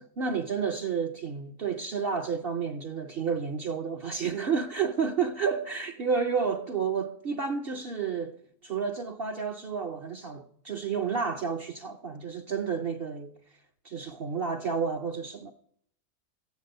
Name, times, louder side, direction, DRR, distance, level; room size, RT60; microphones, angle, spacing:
voice 1, 0.0-8.4 8.6-13.3 13.8-15.5, right 5 dB, 55° right, 0.7 m, -31 dB
14.5 x 9.4 x 5.4 m
omnidirectional pair, 1.7 m